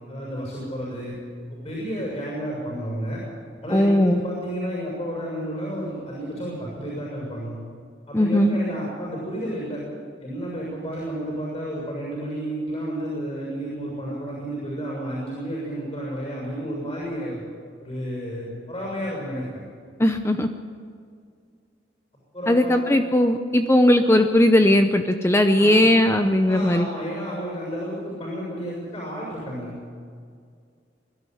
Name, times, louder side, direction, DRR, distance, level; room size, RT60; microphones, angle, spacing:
voice 1, 0.1-1.2 1.6-3.2 3.6-7.5 8.1-9.8 10.2-17.4 17.8-19.5 22.3-22.8 25.6-25.8 26.5-29.7, equal, 35° left, -4 dB, 6.9 m, -31 dB
voice 2, 3.7-4.2 8.1-8.6 20.0-20.5 22.5-26.9, left 1 dB, 15° left, 6 dB, 0.7 m, -18 dB
22.5 x 12.5 x 9.4 m, 2.2 s
head